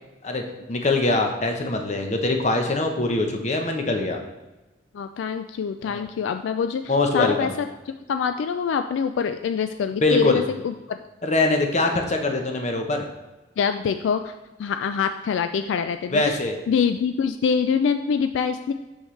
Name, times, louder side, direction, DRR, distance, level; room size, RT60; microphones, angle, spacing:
voice 1, 0.2-4.2 5.9-6.1 6.9-7.5 10.0-10.4 11.2-13.1 16.1-16.6, left 2 dB, 40° left, 4 dB, 0.8 m, -23 dB
voice 2, 4.9-7.5 7.9-11.0 13.6-14.3 14.6-16.4 16.7-18.7, left 6 dB, 75° left, 8 dB, 0.3 m, -25 dB
6.3 x 6.3 x 3.2 m, 1.1 s
head